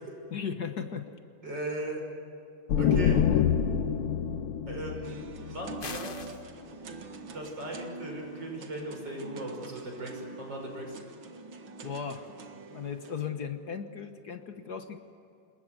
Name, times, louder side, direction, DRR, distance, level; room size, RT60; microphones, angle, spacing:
voice 1, 0.3-1.1 3.1-3.2 11.8-12.3 12.7-15.0, left 7 dB, 55° left, 7 dB, 1.6 m, -36 dB
voice 2, 1.4-2.0 2.8-3.2 4.7-6.2 7.3-11.0, right 1 dB, 60° right, 1 dB, 6.5 m, -37 dB
sound 1, 2.7-6.3, left 8 dB, 85° left, 1.8 m, -27 dB
sound 2, 5.0-13.3, right 4 dB, 75° right, 2.4 m, -45 dB
sound 3, 5.8-6.4, left 4 dB, 35° left, 1.1 m, -40 dB
27.0 x 21.0 x 7.9 m, 2.8 s
omnidirectional pair, 2.2 m